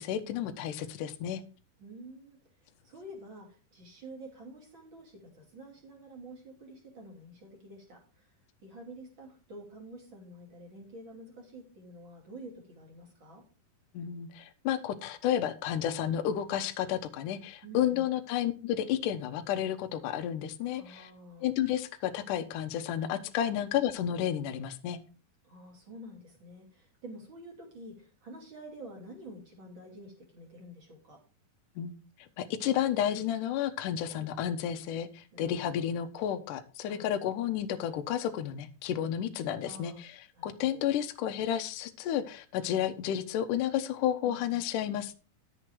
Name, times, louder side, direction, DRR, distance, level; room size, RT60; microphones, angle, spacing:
voice 1, 0.0-1.4 13.9-21.1 21.4-25.0 31.8-32.0 32.4-45.2, left 10 dB, 75° left, 7 dB, 2.2 m, -31 dB
voice 2, 1.8-2.4 2.8-8.3 8.6-13.4 17.6-18.0 20.8-21.5 23.4-23.6 25.4-31.2 34.1-34.3 35.3-35.9 36.9-37.0 39.6-40.0 40.4-40.8 44.2-44.6, right 1 dB, 35° right, 0 dB, 3.3 m, -48 dB
11.0 x 7.4 x 4.6 m, 0.34 s
omnidirectional pair, 4.2 m